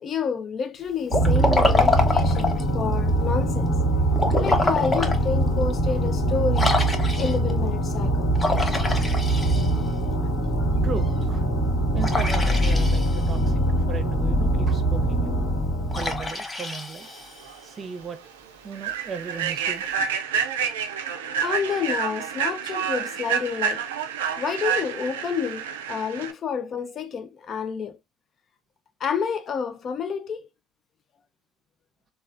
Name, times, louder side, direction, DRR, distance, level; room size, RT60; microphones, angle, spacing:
voice 1, 0.0-3.7 4.4-6.7 7.2-8.3 21.4-23.8 24.4-28.0 29.0-30.5, left 6 dB, 50° left, 0.4 m, -29 dB
sound 1, 1.1-16.3, right 1 dB, 80° left, 1.2 m, -23 dB
Liquid, 1.1-2.7 4.1-5.2 5.7-5.8 6.5-7.5 8.4-10.0 12.0-13.4 15.9-17.6, left 3 dB, 25° left, 0.8 m, -26 dB
voice 2, 10.8-11.4 11.9-13.6 13.9-15.4 16.0-17.1 17.6-18.2 18.6-19.9, right 5 dB, 40° right, 0.6 m, -35 dB
Human voice / Train, 17.4-17.6 18.0-18.2 18.7-26.3, right 7 dB, 90° right, 0.3 m, -28 dB
3.1 x 2.3 x 2.4 m
hypercardioid pair, 65°, 0 cm